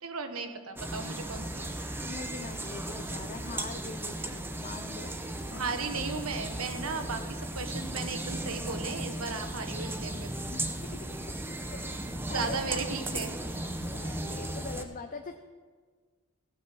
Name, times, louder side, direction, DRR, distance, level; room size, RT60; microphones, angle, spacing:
voice 1, 0.0-1.7 5.5-10.4 12.3-13.4, right 4 dB, 70° right, 7 dB, 1.2 m, -36 dB
sound 1, 0.8-14.8, right 1 dB, 10° right, 0.7 m, -36 dB
voice 2, 2.0-5.1 5.5-5.7 10.5-12.8 13.9-15.4, left 4 dB, 40° left, 6 dB, 0.5 m, -43 dB
16.5 x 8.0 x 6.1 m, 1.5 s
head